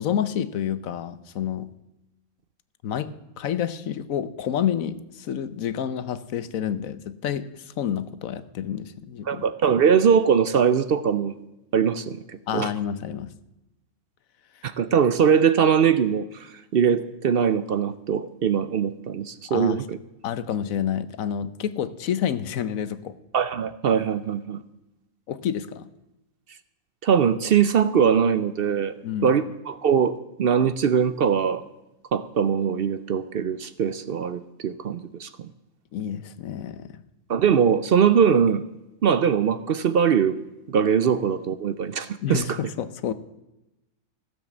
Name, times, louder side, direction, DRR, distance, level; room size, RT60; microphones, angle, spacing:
voice 1, 0.0-1.7 2.8-3.1 3.4-9.4 12.5-13.3 19.5-19.8 20.2-23.1 25.3-25.9 29.0-29.3 35.9-37.0 42.2-43.1, left 9 dB, 70° left, 14 dB, 1.1 m, -29 dB
voice 2, 9.3-11.3 11.7-12.7 14.6-20.0 23.3-24.6 27.0-28.9 29.2-31.6 32.1-35.5 37.3-38.6 39.0-40.4 40.7-42.6, right 7 dB, 60° right, 14 dB, 0.6 m, -21 dB
16.0 x 7.6 x 7.3 m, 0.95 s
omnidirectional pair, 1.5 m